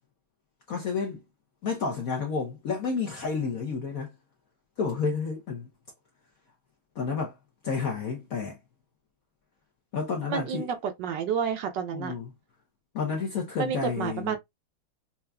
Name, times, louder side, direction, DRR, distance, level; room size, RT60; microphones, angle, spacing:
voice 1, 0.7-1.2 1.6-4.1 4.8-5.7 6.9-7.4 7.6-8.6 9.9-10.7 11.9-12.3 12.9-14.4, left 5 dB, 65° left, 0.9 m, -30 dB
voice 2, 10.3-12.1 13.6-14.4, right 7 dB, 70° right, 1.2 m, -30 dB
5.7 x 2.5 x 2.2 m
omnidirectional pair, 2.3 m